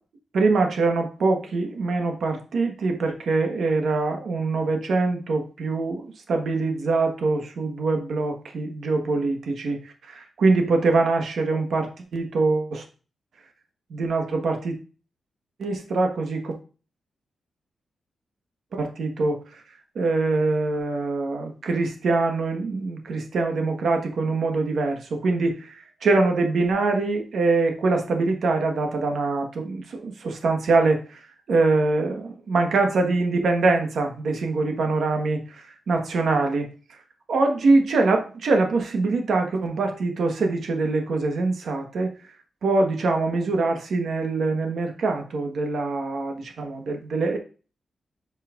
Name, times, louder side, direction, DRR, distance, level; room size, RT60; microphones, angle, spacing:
voice 1, 0.3-9.8 10.1-12.8 13.9-14.8 15.6-16.5 18.7-19.4 19.9-25.8 26.0-31.0 31.5-35.4 35.9-36.7 37.3-42.1 42.6-47.4, right 3 dB, 70° right, 3 dB, 1.3 m, -23 dB
7.7 x 5.7 x 2.5 m, 0.35 s
wide cardioid pair, 145°, 0 cm